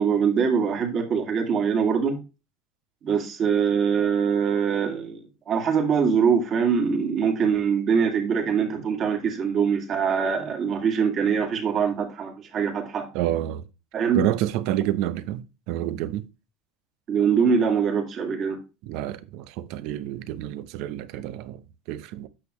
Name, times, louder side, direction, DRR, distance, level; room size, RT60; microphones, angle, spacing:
voice 1, 0.0-2.2 3.0-5.2 5.5-13.1 13.9-14.2 17.1-18.6, right 6 dB, 45° right, 2.5 m, -23 dB
voice 2, 13.1-13.6 14.1-16.3 18.8-21.6 21.9-22.3, right 13 dB, 70° right, 0.7 m, -28 dB
8.9 x 6.3 x 3.1 m
supercardioid pair, 110°, 0 cm